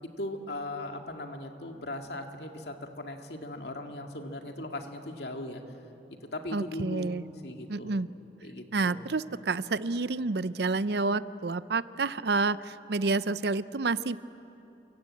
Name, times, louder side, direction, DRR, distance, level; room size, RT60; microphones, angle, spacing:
voice 1, 0.2-5.6 6.3-7.9 8.4-9.1, left 1 dB, 75° left, 4 dB, 2.2 m, -38 dB
voice 2, 6.5-7.2 7.7-8.1 8.7-14.2, right 3 dB, 70° right, 16 dB, 0.6 m, -29 dB
28.5 x 24.0 x 8.6 m, 3.0 s
head